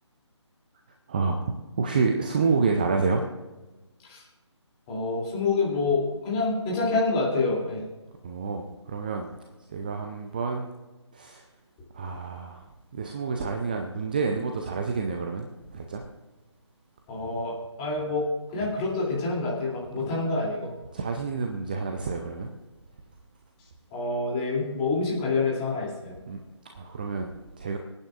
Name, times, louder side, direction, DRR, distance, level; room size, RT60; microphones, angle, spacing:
voice 1, 1.1-3.2 8.2-9.3 9.7-10.7 11.1-11.5 11.9-12.7 12.9-15.5 15.7-16.1 20.0-20.1 20.9-22.5 26.3-27.8, right 4 dB, 20° right, 3 dB, 0.5 m, -29 dB
voice 2, 4.9-7.8 17.1-18.3 18.5-20.7 23.9-26.1, left 3 dB, 15° left, -4 dB, 2.9 m, -27 dB
25.0 x 9.2 x 2.5 m, 1.2 s
figure-of-eight pair, 150°, 15 cm